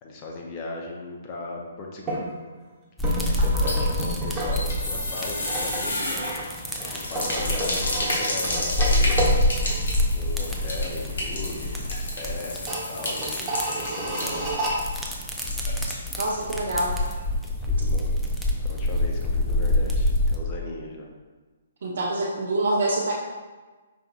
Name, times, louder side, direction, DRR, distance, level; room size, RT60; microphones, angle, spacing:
voice 1, 0.0-2.2 3.2-6.2 6.8-9.2 10.1-11.8 12.1-14.5 17.7-18.1 18.6-21.1, left 3 dB, 30° left, -1 dB, 0.7 m, -37 dB
sound 1, 2.1-2.2 3.0-4.6 4.9-10.2 10.5-10.6 11.1-11.6 11.9-12.0 12.5-14.7, right 1 dB, 15° right, 1.1 m, -31 dB
sound 2, 3.0-20.4, left 1 dB, ahead, 0.4 m, -27 dB
sound 3, 3.5-16.4 16.7-16.8 17.1-17.2, left 1 dB, 75° left, 1.1 m, -32 dB
voice 2, 16.2-17.0 21.8-23.1, right 2 dB, 65° right, -2 dB, 0.4 m, -25 dB
4.9 x 2.8 x 2.5 m, 1.3 s
hypercardioid pair, 140°, 0 cm